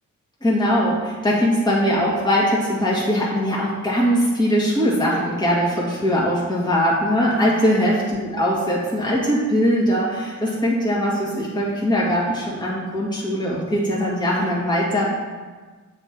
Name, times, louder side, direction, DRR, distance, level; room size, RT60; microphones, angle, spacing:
voice 1, 0.4-15.1, equal, 15° left, -6 dB, 1.9 m, -21 dB
7.1 x 3.8 x 5.9 m, 1.4 s
cardioid pair, 65°, 31 cm